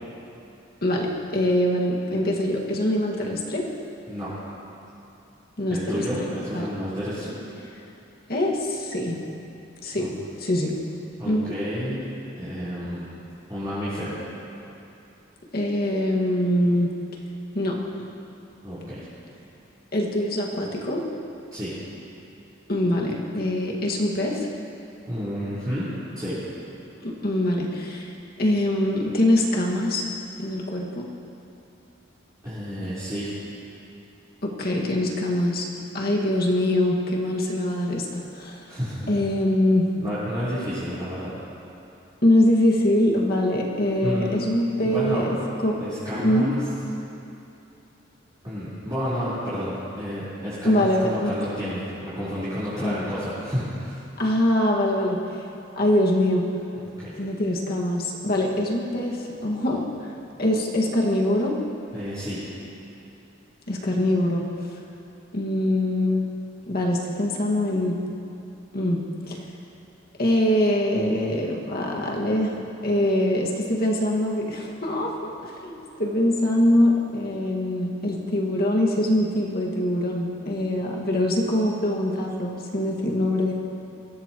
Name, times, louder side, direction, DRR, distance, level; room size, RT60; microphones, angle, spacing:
voice 1, 0.8-3.6 5.6-6.0 6.5-6.7 8.3-9.2 9.8-10.8 11.3-11.5 15.5-16.9 17.5-17.8 19.9-21.0 22.7-24.5 27.0-28.1 28.4-30.0 30.4-31.1 34.4-35.7 35.9-38.6 39.1-39.9 42.2-45.8 46.1-46.5 50.6-51.3 52.8-53.1 54.2-55.4 55.8-56.5 57.2-60.1 60.4-61.5 63.7-64.5 65.3-66.3 66.7-68.0 68.7-69.4 70.2-72.5 72.8-83.5, left 1 dB, 50° left, -2 dB, 1.9 m, -23 dB
voice 2, 5.7-7.3 9.9-10.1 11.2-12.1 12.4-13.0 13.5-14.1 18.6-19.0 21.5-21.7 25.1-25.9 26.2-26.4 32.4-33.3 38.7-39.1 40.0-41.3 44.0-44.4 44.8-45.3 45.8-46.6 48.4-54.0 56.8-57.1 61.9-62.4, equal, 20° right, -15 dB, 4.1 m, -30 dB
22.5 x 16.0 x 3.1 m, 2.8 s
head